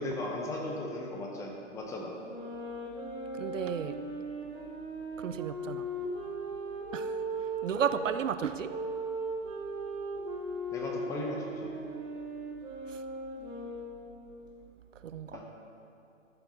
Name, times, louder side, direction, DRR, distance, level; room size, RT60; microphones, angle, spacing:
voice 1, 0.0-2.2 10.7-11.7 15.3-15.4, left 1 dB, 10° left, 0 dB, 0.6 m, -36 dB
sound 1, 2.1-8.0 8.7-14.1, right 1 dB, 10° right, 0.9 m, -38 dB
voice 2, 3.3-4.0 5.2-5.9 6.9-8.7 12.9-13.0 14.9-15.4, right 8 dB, 85° right, 12 dB, 0.6 m, -34 dB
13.0 x 7.3 x 4.0 m, 2.7 s
hypercardioid pair, 140°, 37 cm